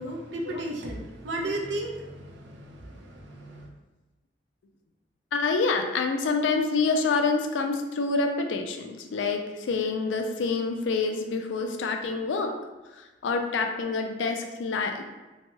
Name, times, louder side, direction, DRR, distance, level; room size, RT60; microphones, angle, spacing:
voice 1, 0.0-3.7, right 1 dB, 75° right, 0 dB, 0.5 m, -34 dB
voice 2, 5.3-12.6 13.2-15.0, left 4 dB, 90° left, 5 dB, 0.4 m, -27 dB
2.8 x 2.2 x 2.9 m, 1.1 s
head